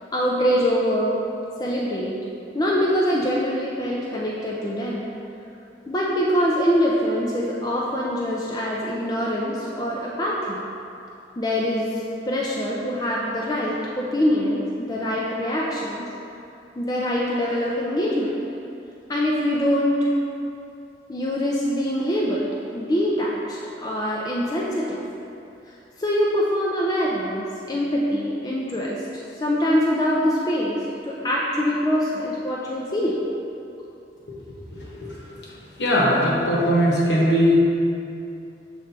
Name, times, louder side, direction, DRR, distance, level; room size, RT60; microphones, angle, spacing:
voice 1, 0.1-1.2 1.6-2.2 2.5-5.1 5.9-10.6 11.4-16.1 16.8-18.3 19.1-20.1 21.1-22.5 22.7-25.0 26.0-33.2 33.8-33.9, equal, 20° left, -4 dB, 0.4 m, -24 dB
voice 2, 34.7-35.2 35.8-37.6, equal, 65° left, -5 dB, 1.2 m, -20 dB
7.2 x 3.2 x 4.0 m, 2.7 s
head